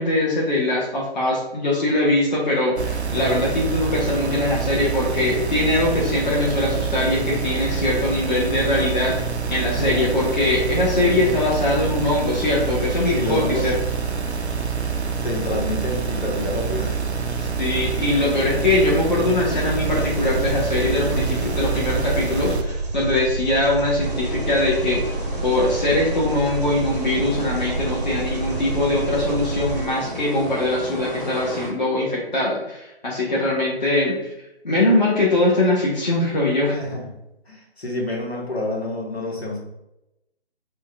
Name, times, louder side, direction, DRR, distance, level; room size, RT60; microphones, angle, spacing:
voice 1, 0.0-9.3 9.5-13.8 17.4-25.2 25.4-34.2 34.6-36.8, left 2 dB, 45° left, -4 dB, 1.1 m, -22 dB
sound 1, 2.8-22.6, right 6 dB, 90° right, 0.6 m, -26 dB
voice 2, 9.7-10.1 11.0-11.2 13.0-13.7 15.2-17.0 36.7-37.1 37.5-39.6, left 1 dB, 75° left, -2 dB, 1.6 m, -28 dB
Engine, 19.9-29.9, right 2 dB, 40° right, 0.7 m, -28 dB
sound 2, 24.0-31.7, right 1 dB, ahead, 0.6 m, -33 dB
6.0 x 2.3 x 3.4 m, 0.87 s
figure-of-eight pair, 145°, 32 cm